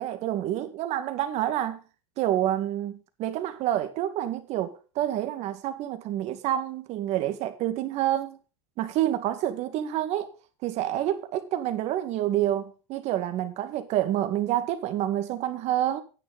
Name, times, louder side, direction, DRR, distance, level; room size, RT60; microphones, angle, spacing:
voice 1, 0.0-1.8 2.2-8.4 8.8-10.3 10.6-16.0, right 12 dB, 50° right, 2.0 m, -28 dB
10.0 x 8.7 x 5.2 m
hypercardioid pair, 110°, 15 cm